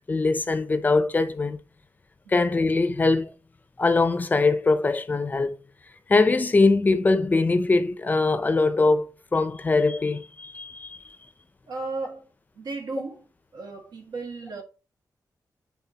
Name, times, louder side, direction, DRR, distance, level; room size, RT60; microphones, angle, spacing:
voice 1, 0.1-1.6 2.3-3.3 3.8-5.6 6.1-11.2, left 3 dB, 25° left, 0.5 m, -22 dB
voice 2, 11.7-12.3 12.6-13.2 13.5-14.6, right 3 dB, 90° right, 1.8 m, -34 dB
9.1 x 3.8 x 2.8 m
wide cardioid pair, 170°, 7 cm